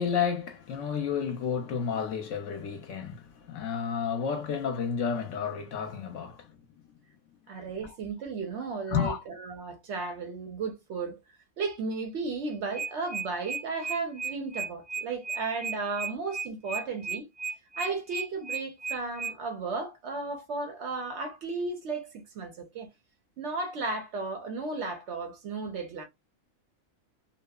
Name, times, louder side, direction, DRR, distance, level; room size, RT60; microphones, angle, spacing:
voice 1, 0.0-6.5 8.9-9.2, left 7 dB, 70° left, 0.8 m, -31 dB
voice 2, 7.5-11.2 11.6-17.3 17.8-22.9 23.4-26.0, right 4 dB, 65° right, 0.7 m, -34 dB
sound 1, 12.7-19.3, right 4 dB, 10° right, 0.6 m, -34 dB
2.8 x 2.0 x 2.2 m
omnidirectional pair, 1.5 m